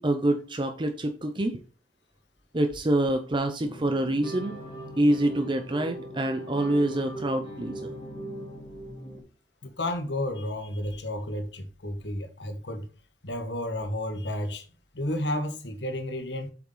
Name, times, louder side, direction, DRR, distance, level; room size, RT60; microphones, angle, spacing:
voice 1, 0.0-1.6 2.5-4.5 5.0-7.9, right 1 dB, 30° right, 0.7 m, -26 dB
sound 1, 3.6-9.2, right 1 dB, 25° left, 2.5 m, -39 dB
voice 2, 9.6-12.9 13.2-14.7 14.9-16.5, left 1 dB, 85° left, 1.6 m, -32 dB
7.9 x 5.8 x 4.0 m
head